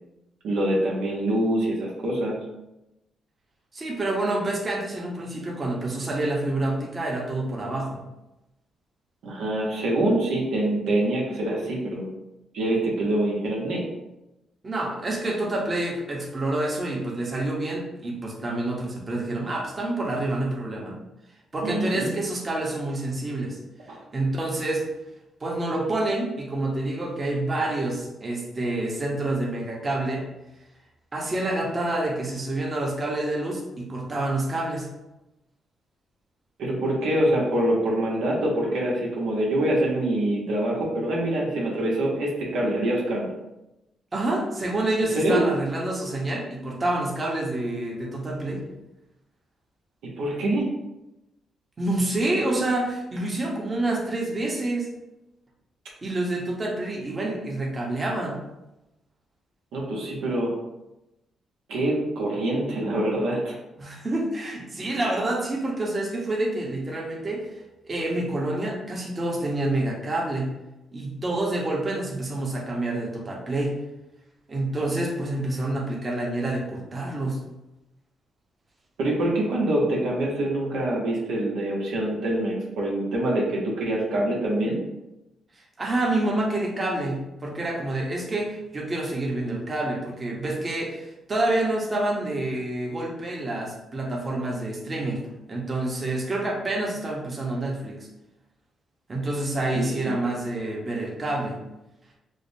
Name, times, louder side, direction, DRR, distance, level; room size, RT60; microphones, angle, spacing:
voice 1, 0.4-2.4 9.2-12.1 12.5-13.8 21.6-22.1 23.9-24.0 36.6-43.3 45.2-45.5 50.0-50.7 59.7-60.5 61.7-63.5 79.0-84.8 99.7-100.2, right 1 dB, 85° right, -4 dB, 0.9 m, -25 dB
voice 2, 3.7-8.0 14.6-21.0 21.5-23.6 23.9-24.9 25.4-30.3 31.1-34.9 44.1-48.6 51.8-54.9 56.0-58.4 63.8-67.5 67.8-70.6 70.9-73.7 74.5-77.4 85.6-98.1 99.1-101.6, right 2 dB, 30° right, -2 dB, 0.9 m, -28 dB
4.8 x 2.1 x 2.7 m, 0.94 s
cardioid pair, 80°, 0 cm